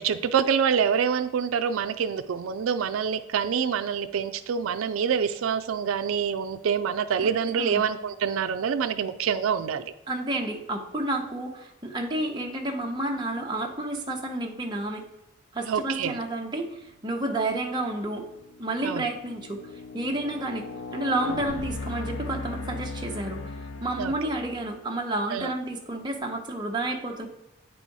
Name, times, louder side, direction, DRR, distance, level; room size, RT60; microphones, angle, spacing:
voice 1, 0.0-9.9 15.7-16.2 18.8-19.1 24.0-24.1 25.3-25.5, right 7 dB, 80° right, 9 dB, 0.4 m, -26 dB
voice 2, 7.2-7.8 10.1-15.0 15.5-18.2 18.6-19.6 19.9-20.7 20.9-23.5 23.8-27.3, right 1 dB, 20° right, 1 dB, 0.9 m, -30 dB
sound 1, 17.0-17.3 17.9-24.8, left 3 dB, 75° left, 0.5 m, -38 dB
9.0 x 4.1 x 4.7 m, 0.91 s
head